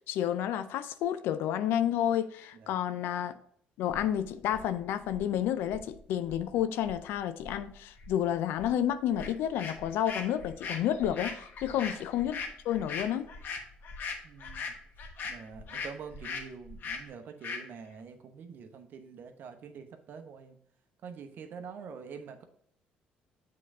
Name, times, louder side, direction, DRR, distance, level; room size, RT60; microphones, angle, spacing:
voice 1, 0.1-3.3 3.8-12.4 12.6-13.3, left 10 dB, 75° left, 0.5 m, -30 dB
sound 1, 3.9-17.1, left 1 dB, 35° left, 1.8 m, -52 dB
sound 2, 9.2-9.3 9.6-15.9 16.2-16.4 16.8-17.0 17.4-17.6, left 5 dB, 60° left, 1.1 m, -38 dB
voice 2, 14.2-14.8 15.2-20.6 21.0-22.4, right 6 dB, 60° right, 0.9 m, -46 dB
7.6 x 3.8 x 3.6 m
supercardioid pair, 70°, 4 cm